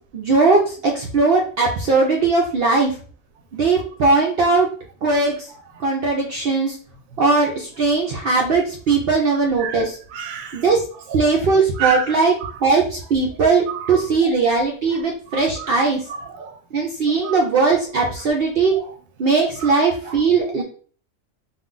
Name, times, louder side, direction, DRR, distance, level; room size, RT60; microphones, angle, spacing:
voice 1, 0.1-2.9 3.5-4.7 5.0-5.3 5.8-6.8 7.2-9.9 10.5-10.8 11.1-12.3 12.6-16.0 16.7-18.7 19.2-20.6, right 4 dB, 60° right, -1 dB, 0.6 m, -19 dB
voice 2, 10.1-10.7 11.1-11.3 11.7-12.5 13.7-14.4 14.9-15.7 16.1-16.6 17.1-17.4 18.7-19.0 19.6-19.7 20.0-20.3, right 7 dB, 90° right, 5 dB, 1.0 m, -31 dB
2.4 x 2.3 x 3.7 m, 0.43 s
omnidirectional pair, 1.4 m